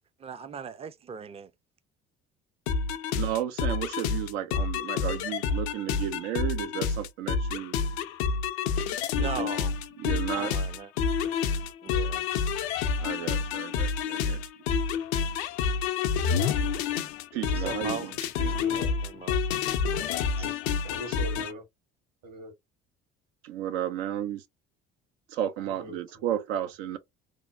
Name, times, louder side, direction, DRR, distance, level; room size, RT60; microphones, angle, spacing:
voice 1, 0.2-1.5 9.1-9.7 10.4-10.9 11.8-12.3 17.5-18.1 19.0-19.4 20.3-20.5, right 6 dB, 20° right, 0.4 m, -38 dB
sound 1, 2.7-21.5, left 6 dB, 85° left, 0.5 m, -28 dB
voice 2, 3.1-7.8 9.2-9.5 10.0-10.5 13.0-14.4 17.3-18.1 23.4-24.4 25.3-27.0, right 11 dB, 80° right, 0.5 m, -33 dB
voice 3, 18.4-18.9 20.4-20.6 20.8-21.6 22.2-22.5 25.7-26.0, equal, 60° right, 1.6 m, -40 dB
3.1 x 2.1 x 2.4 m
hypercardioid pair, 60°, 32 cm